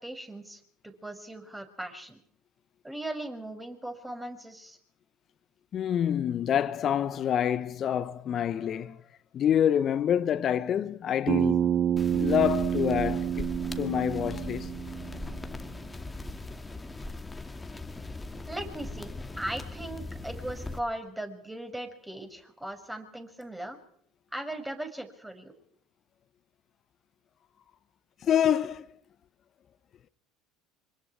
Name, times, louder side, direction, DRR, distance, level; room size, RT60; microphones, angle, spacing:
voice 1, 0.0-2.2 2.8-4.8 18.5-19.1 19.4-23.8 24.3-25.5, right 1 dB, 10° right, 6.4 m, -38 dB
voice 2, 5.7-9.0 9.3-11.7 12.1-13.4 13.8-14.7 28.2-28.8, left 9 dB, 45° left, 1.3 m, -27 dB
Bass guitar, 11.3-15.6, right 9 dB, 55° right, 2.1 m, -28 dB
sound 1, 12.0-20.8, left 2 dB, 15° left, 2.3 m, -39 dB
26.0 x 26.0 x 5.0 m
hypercardioid pair, 70°, 0 cm